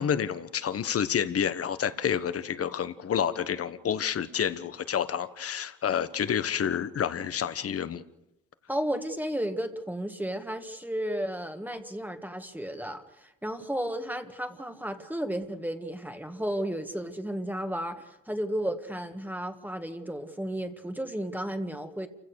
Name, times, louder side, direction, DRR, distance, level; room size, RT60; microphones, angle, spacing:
voice 1, 0.0-8.0, left 8 dB, 50° left, 13 dB, 1.3 m, -29 dB
voice 2, 8.7-22.1, right 1 dB, 5° right, 6 dB, 1.8 m, -33 dB
28.5 x 16.5 x 6.5 m, 0.90 s
cardioid pair, 90°, 30 cm